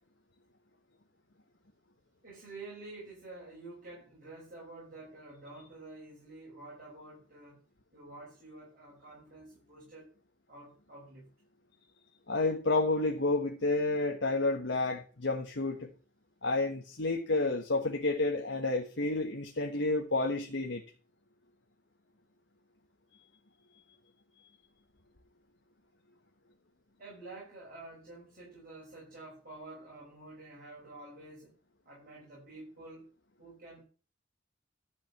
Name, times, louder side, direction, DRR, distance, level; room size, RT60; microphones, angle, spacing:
voice 1, 2.2-7.6 7.9-10.2 10.5-11.3 27.0-31.6 31.8-33.1 33.4-33.8, right 2 dB, 50° right, 6.0 m, -49 dB
voice 2, 12.3-15.9 16.4-20.8, left 2 dB, 70° left, 1.3 m, -30 dB
12.0 x 5.3 x 7.2 m
head